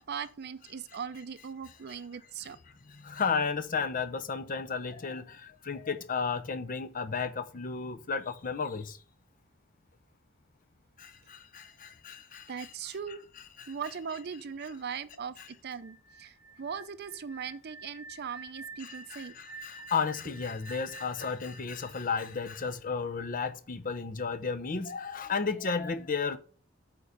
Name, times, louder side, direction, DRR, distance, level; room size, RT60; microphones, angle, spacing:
voice 1, 0.0-2.6 12.5-13.2 13.7-19.4, right 6 dB, 50° right, 0.5 m, -39 dB
voice 2, 2.9-9.0 11.0-12.7 13.6-13.7 15.4-15.5 18.8-26.4, left 5 dB, 40° left, 0.7 m, -33 dB
sound 1, 15.7-22.7, right 2 dB, ahead, 1.4 m, -49 dB
8.5 x 3.7 x 6.7 m
head